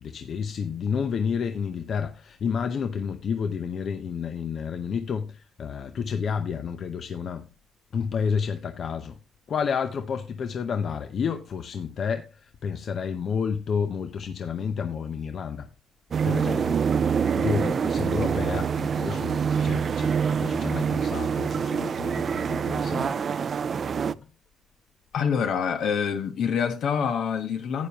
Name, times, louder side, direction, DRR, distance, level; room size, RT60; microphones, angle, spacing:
voice 1, 0.0-7.5 7.9-9.2 9.5-15.7 16.2-16.8 17.4-23.2, left 6 dB, 55° left, 0.8 m, -30 dB
sound 1, 16.1-24.1, right 6 dB, 50° right, 0.4 m, -26 dB
voice 2, 25.1-27.9, left 7 dB, 70° left, 1.3 m, -26 dB
11.5 x 8.8 x 2.9 m
cardioid pair, 90°, 0 cm